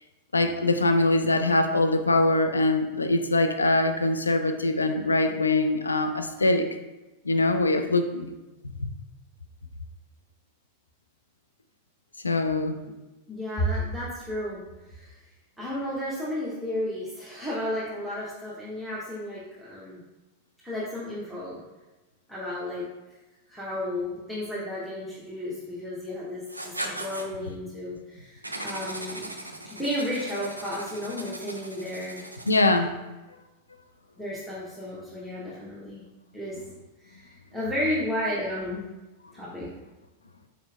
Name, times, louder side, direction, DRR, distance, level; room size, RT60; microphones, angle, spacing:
voice 1, 0.3-6.6 7.2-8.3 8.8-8.9 12.2-12.8 32.5-32.9, left 2 dB, 80° left, 7 dB, 0.3 m, -23 dB
voice 2, 13.3-14.6 14.9-15.1 15.6-20.0 20.6-21.6 22.3-22.8 23.5-29.3 29.7-32.2 34.2-36.0 36.3-36.6 37.0-38.8 39.3-39.7, left 1 dB, ahead, -9 dB, 0.8 m, -32 dB
Writing, 26.5-27.3 28.4-32.8, right 1 dB, 85° right, 0.3 m, -38 dB
4.3 x 4.1 x 2.3 m, 1.1 s
figure-of-eight pair, 90°, 0 cm